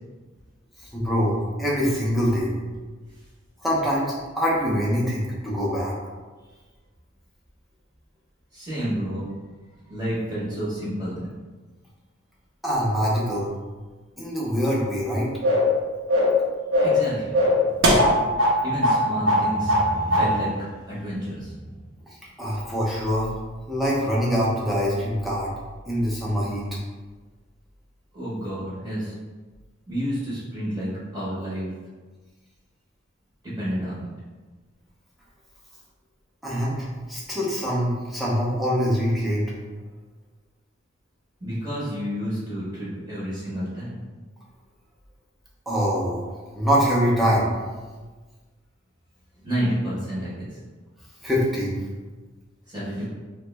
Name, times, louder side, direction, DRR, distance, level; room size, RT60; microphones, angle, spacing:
voice 1, 0.9-2.5 3.6-4.1 4.4-5.9 12.6-13.5 14.2-15.3 22.4-23.3 23.7-25.5 25.9-26.6 36.4-39.4 45.7-47.5 51.2-51.7, equal, ahead, -7 dB, 0.6 m, -24 dB
voice 2, 8.5-9.3 9.8-11.3 16.8-17.4 18.5-21.8 28.1-29.1 29.9-31.7 33.4-34.1 41.4-44.0 49.4-50.6 52.7-53.0, equal, 20° right, -10 dB, 0.9 m, -30 dB
sound 1, 15.4-15.7 16.1-16.4 16.7-17.0 17.3-18.6 18.8-19.0 19.3-19.9 20.1-20.3, left 1 dB, 65° right, 0.7 m, -19 dB
3.1 x 2.1 x 3.2 m, 1.3 s
head